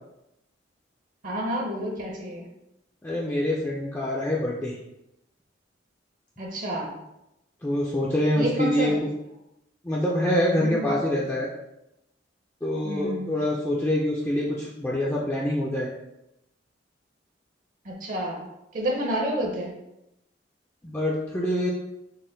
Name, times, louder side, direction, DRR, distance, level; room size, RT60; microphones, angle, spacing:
voice 1, 1.2-2.5 6.4-7.0 8.4-9.0 10.6-10.9 12.8-13.3 17.8-18.5 18.7-19.7, right 1 dB, 45° right, 0 dB, 0.7 m, -29 dB
voice 2, 3.0-4.8 7.6-8.9 9.8-11.5 12.6-15.9 20.8-21.7, left 1 dB, 10° left, -5 dB, 0.4 m, -25 dB
4.1 x 2.2 x 3.8 m, 0.87 s
head